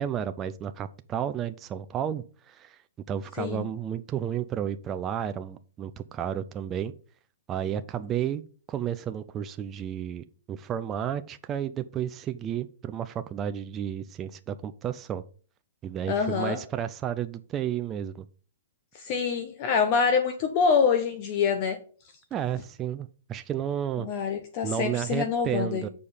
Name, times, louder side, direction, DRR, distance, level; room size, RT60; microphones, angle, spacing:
voice 1, 0.0-2.8 3.1-6.9 7.5-8.4 8.7-15.2 15.8-18.3 22.3-24.1 24.6-25.9, right 9 dB, 20° right, 9 dB, 0.4 m, -32 dB
voice 2, 16.1-16.6 18.9-21.8 24.0-25.9, left 6 dB, 35° left, 6 dB, 0.9 m, -25 dB
6.8 x 5.0 x 5.6 m, 0.41 s
hypercardioid pair, 155°, 0 cm